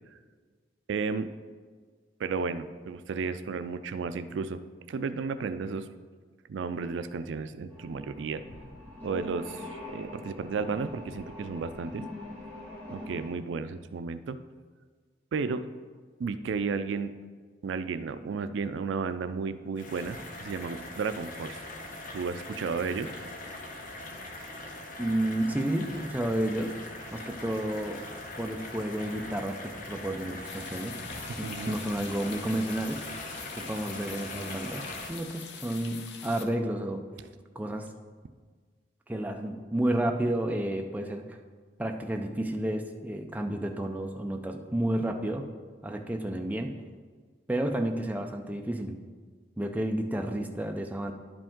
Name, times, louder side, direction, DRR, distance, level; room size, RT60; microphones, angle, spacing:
voice 1, 0.9-1.3 2.2-4.6 4.9-5.9 6.5-8.4 9.0-9.6 9.9-12.0 12.9-14.4 15.3-15.6 16.2-17.1 17.6-21.6 22.1-23.1 27.5-27.6 31.4-31.8, right 5 dB, 80° right, 12 dB, 0.4 m, -33 dB
sound 1, 7.7-13.3, left 2 dB, 10° left, 2.0 m, -43 dB
sound 2, 19.8-35.1, left 2 dB, 45° left, 1.0 m, -41 dB
voice 2, 25.0-26.7 27.1-28.0 28.4-31.0 31.4-33.0 33.5-34.8 35.1-37.0 37.6-37.9 39.1-41.4 41.8-45.5 45.8-46.7 47.5-49.0 49.6-51.1, right 1 dB, 10° right, 3 dB, 0.4 m, -31 dB
sound 3, 30.4-36.5, left 7 dB, 65° left, 0.6 m, -45 dB
11.0 x 5.1 x 3.7 m, 1.5 s
head